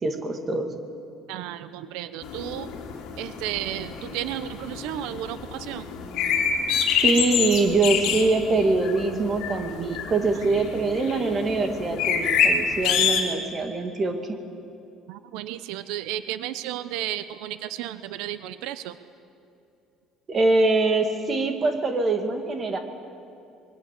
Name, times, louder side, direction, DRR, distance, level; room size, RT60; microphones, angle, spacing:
voice 1, 0.0-0.7 7.0-14.4 20.3-22.8, right 3 dB, 25° right, 5 dB, 2.2 m, -24 dB
voice 2, 1.3-2.7 3.2-5.9 15.1-19.0, right 13 dB, 85° right, 12 dB, 0.8 m, -33 dB
sound 1, 2.2-13.2, left 7 dB, 60° left, 3.4 m, -27 dB
26.0 x 22.5 x 8.4 m, 2.7 s
cardioid pair, 160°, 0 cm